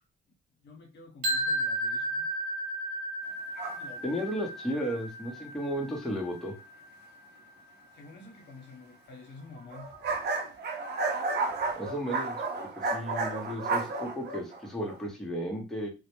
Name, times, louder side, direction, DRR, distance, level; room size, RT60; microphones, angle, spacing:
voice 1, 0.6-2.3 3.3-3.4 3.8-4.2 7.9-9.9, left 3 dB, 60° left, 0.9 m, -49 dB
sound 1, 1.2-7.2, equal, 80° right, 0.9 m, -34 dB
sound 2, 3.6-3.8 4.4-4.5 9.6-14.9, right 3 dB, 55° right, 0.6 m, -32 dB
voice 2, 4.0-6.6 11.7-15.9, equal, ahead, 0.7 m, -34 dB
2.1 x 2.0 x 2.9 m
cardioid pair, 90°, 20 cm